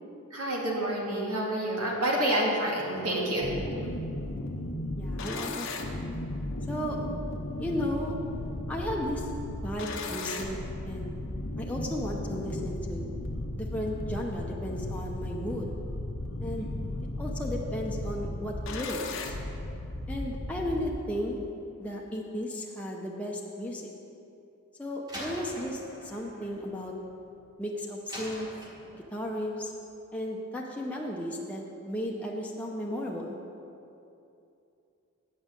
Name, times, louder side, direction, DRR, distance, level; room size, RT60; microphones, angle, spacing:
voice 1, 0.3-3.5 3.8-3.9 16.5-16.9, right 1 dB, 90° right, -3 dB, 2.0 m, -29 dB
sound 1, 3.4-20.9, left 1 dB, 65° left, 0.8 m, -35 dB
voice 2, 5.0-6.1 6.7-7.0 7.6-8.1 8.7-9.2 9.6-10.6 10.8-11.1 11.6-13.1 13.6-15.7 16.4-16.7 17.2-19.3 20.1-21.4 21.8-23.9 24.8-26.9 27.6-28.5 28.9-29.7 30.1-33.4, equal, 5° left, -3 dB, 0.7 m, -34 dB
Slam, 25.1-27.5 28.1-29.3, equal, 15° right, 1.4 m, -44 dB
9.2 x 5.5 x 7.6 m, 2.7 s
head